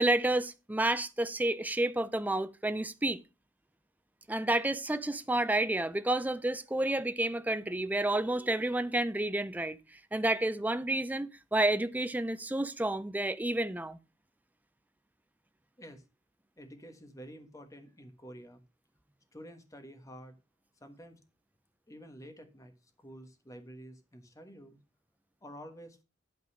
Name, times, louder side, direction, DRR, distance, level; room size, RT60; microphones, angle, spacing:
voice 1, 0.0-3.2 4.3-9.8 10.1-14.0, right 1 dB, 10° right, 0.5 m, -30 dB
voice 2, 16.6-18.6 19.3-20.4 20.8-21.2 21.9-22.7 23.0-24.8 25.4-26.0, equal, 15° left, 1.3 m, -49 dB
11.0 x 4.1 x 6.1 m
head